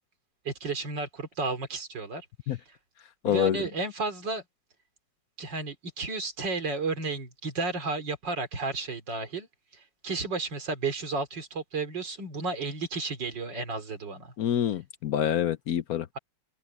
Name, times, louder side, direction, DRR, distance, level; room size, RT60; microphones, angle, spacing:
voice 1, 0.5-2.3 3.3-4.4 5.4-9.5 9.7-14.3, right 3 dB, 80° right, 3.7 m, -32 dB
voice 2, 3.2-3.6 14.4-16.1, left 10 dB, 65° left, 1.0 m, -26 dB
omnidirectional pair, 1.9 m